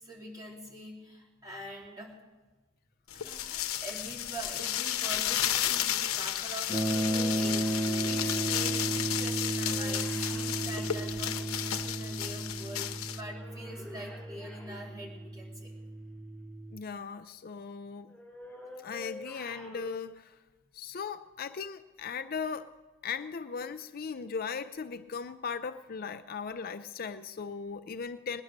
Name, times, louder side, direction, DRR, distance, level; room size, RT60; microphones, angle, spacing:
voice 1, 0.0-2.1 3.2-15.7, right 1 dB, 20° right, -4 dB, 3.8 m, -44 dB
sound 1, 3.1-13.2, left 11 dB, 85° left, 0.7 m, -33 dB
sound 2, 6.7-16.8, right 1 dB, 50° right, 1.2 m, -34 dB
sound 3, 6.8-11.8 13.1-15.6 18.1-19.9, left 1 dB, ahead, 5.1 m, -48 dB
voice 2, 16.7-18.1 18.8-20.4 20.7-22.7 23.0-28.4, left 6 dB, 45° left, 10 dB, 0.5 m, -38 dB
19.5 x 10.0 x 6.6 m, 1.2 s
head